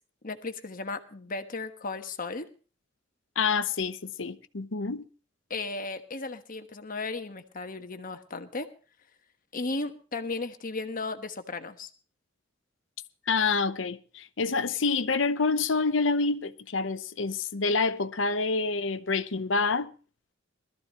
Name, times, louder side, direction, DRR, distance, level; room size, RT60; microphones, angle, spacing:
voice 1, 0.2-2.5 5.5-8.7 9.5-11.9, left 3 dB, 45° left, 1.3 m, -35 dB
voice 2, 3.4-5.0 13.3-19.9, left 4 dB, 75° left, 0.8 m, -27 dB
20.5 x 14.0 x 3.0 m
head